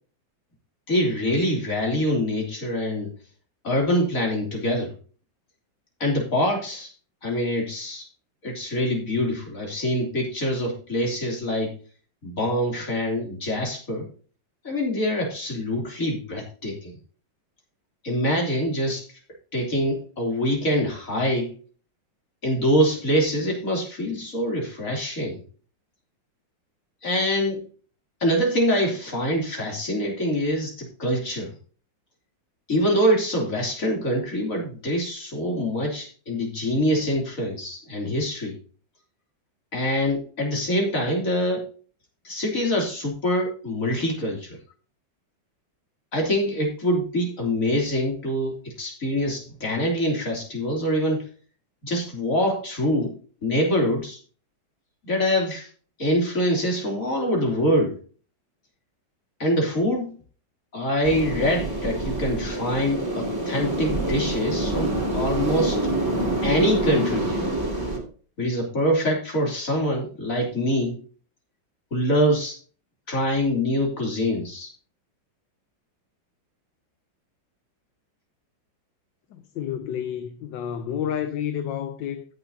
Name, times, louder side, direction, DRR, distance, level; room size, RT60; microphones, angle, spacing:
voice 1, 0.9-3.1 3.6-4.9 6.0-6.9 7.2-8.1 8.4-11.8 12.2-14.1 14.6-16.9 18.0-19.1 19.5-21.5 22.4-25.4 27.0-27.6 28.2-31.5 32.7-38.6 39.7-41.7 42.2-44.6 46.1-51.3 51.8-53.1 53.4-54.2 55.0-55.7 56.0-58.0 59.4-60.1 60.7-65.8 66.4-67.4 68.4-71.0 71.9-72.6 73.1-74.7, equal, 40° left, 3.6 m, -24 dB
sound 1, 61.0-68.0, right 2 dB, 10° right, 3.0 m, -26 dB
voice 2, 79.3-82.3, left 9 dB, 70° left, 1.4 m, -30 dB
16.5 x 7.1 x 2.8 m
omnidirectional pair, 2.1 m